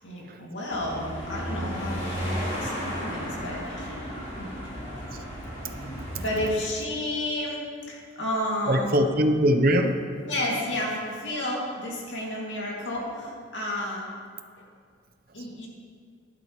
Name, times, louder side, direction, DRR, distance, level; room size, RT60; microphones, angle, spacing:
voice 1, 0.0-4.5 5.5-7.6 7.9-8.9 10.2-14.0 14.6-14.7 15.3-15.7, left 1 dB, 60° left, -4 dB, 2.5 m, -32 dB
sound 1, 0.7-6.5, equal, 35° left, 3.1 m, -34 dB
voice 2, 8.7-10.0, equal, 45° right, 6 dB, 0.8 m, -22 dB
15.0 x 11.5 x 3.2 m, 2.2 s
head